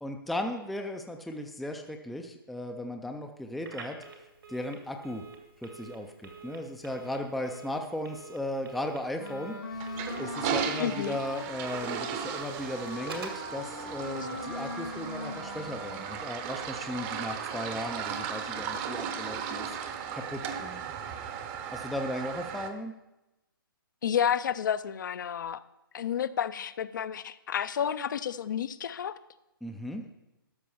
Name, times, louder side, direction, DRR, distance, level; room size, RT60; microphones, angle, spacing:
voice 1, 0.0-4.0 4.5-5.2 5.6-20.8 21.7-22.9 29.6-30.0, left 1 dB, ahead, 4 dB, 0.3 m, -36 dB
Telephone, 3.6-13.5, right 5 dB, 80° right, 2.3 m, -47 dB
Wind instrument woodwind instrument, 9.2-16.3, left 3 dB, 75° left, 2.6 m, -41 dB
Toilet flush, 9.7-22.7, right 7 dB, 20° right, 0.7 m, -36 dB
voice 2, 10.8-11.2 24.0-25.6 25.9-29.2, left 8 dB, 55° left, 15 dB, 0.5 m, -30 dB
12.5 x 5.2 x 7.0 m, 0.96 s
hypercardioid pair, 155°, 12 cm